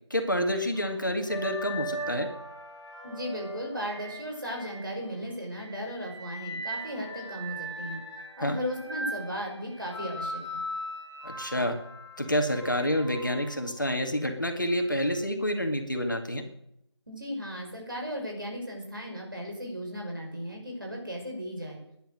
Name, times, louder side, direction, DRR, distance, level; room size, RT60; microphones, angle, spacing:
voice 1, 0.1-2.3 8.4-8.6 11.2-11.8 12.2-16.4, equal, 45° left, 6 dB, 2.0 m, -28 dB
sound 1, 0.7-5.1 5.5-13.6 14.7-14.9, right 1 dB, 5° left, 2.8 m, -39 dB
voice 2, 3.0-8.0 8.4-10.6 17.1-21.8, equal, 45° right, 0 dB, 5.8 m, -36 dB
18.0 x 10.5 x 6.5 m, 0.78 s
figure-of-eight pair, 175°, 15 cm